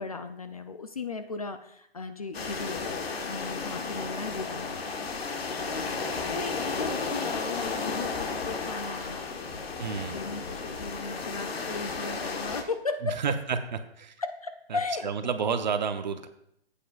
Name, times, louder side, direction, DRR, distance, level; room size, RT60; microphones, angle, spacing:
voice 1, 0.0-5.3 5.7-6.0 6.3-13.4 14.2-15.1, left 4 dB, 35° left, 9 dB, 0.4 m, -37 dB
sound 1, 2.3-12.6, left 4 dB, 75° left, 1.4 m, -33 dB
voice 2, 9.8-10.2 13.0-13.6 14.0-14.1 14.7-16.3, right 6 dB, 45° right, 9 dB, 0.7 m, -30 dB
14.0 x 8.4 x 2.4 m, 0.74 s
hypercardioid pair, 170°, 31 cm